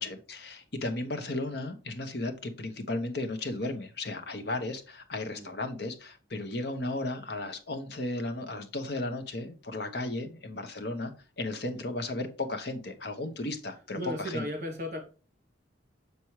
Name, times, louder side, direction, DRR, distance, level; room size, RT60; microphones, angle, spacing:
voice 1, 0.0-14.4, left 2 dB, 55° left, 1.0 m, -35 dB
voice 2, 14.0-15.0, left 1 dB, 40° right, 2.9 m, -36 dB
6.9 x 5.9 x 3.1 m
head